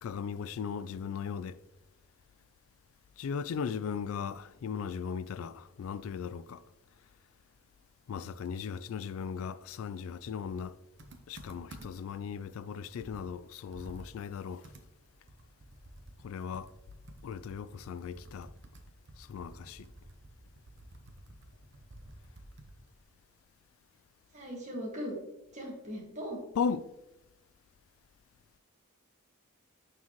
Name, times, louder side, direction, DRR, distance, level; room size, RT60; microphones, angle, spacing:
voice 1, 0.0-1.6 3.2-6.6 8.1-10.8 11.3-14.7 16.2-16.7 17.2-18.5 19.2-19.9 26.6-26.9, left 6 dB, 75° left, 0.3 m, -37 dB
Computer keyboard, 11.0-12.2 12.6-12.7 13.0-16.3 16.5-23.0, right 1 dB, 55° right, 0.9 m, -52 dB
voice 2, 24.3-25.2 25.5-26.4, equal, 30° right, 1.8 m, -39 dB
9.3 x 4.5 x 3.1 m
head